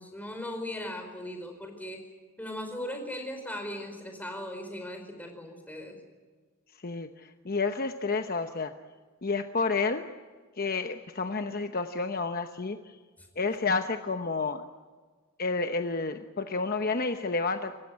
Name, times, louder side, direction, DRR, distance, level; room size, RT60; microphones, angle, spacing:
voice 1, 0.0-2.1 2.4-6.0 13.2-13.3, left 1 dB, 10° left, 4 dB, 4.8 m, -38 dB
voice 2, 6.8-8.7 9.2-10.1 10.6-13.0 13.4-14.6 15.4-17.8, left 4 dB, 45° left, 7 dB, 0.9 m, -30 dB
28.5 x 15.0 x 9.7 m, 1.5 s
head